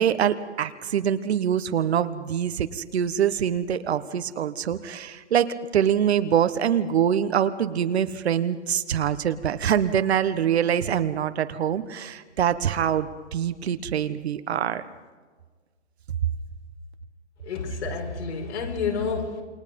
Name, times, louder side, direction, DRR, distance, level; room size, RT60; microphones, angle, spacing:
voice 1, 0.0-5.5 5.7-14.8, right 9 dB, 65° right, 11 dB, 1.4 m, -24 dB
voice 2, 17.4-19.4, left 5 dB, 70° left, 1 dB, 5.3 m, -29 dB
28.5 x 21.0 x 5.4 m, 1.4 s
hypercardioid pair, 155°, 34 cm